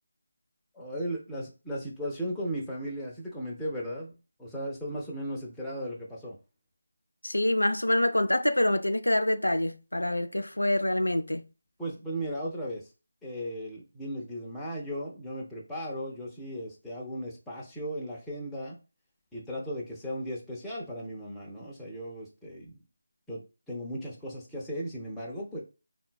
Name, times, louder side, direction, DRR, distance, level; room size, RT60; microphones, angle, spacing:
voice 1, 0.7-4.1 4.4-6.4 11.8-12.9 13.2-18.8 19.3-22.8 23.3-25.6, equal, 5° left, 0.6 m, -36 dB
voice 2, 7.2-11.4, left 1 dB, 90° left, 0.4 m, -26 dB
3.8 x 2.1 x 2.2 m
figure-of-eight pair, 160°, 0 cm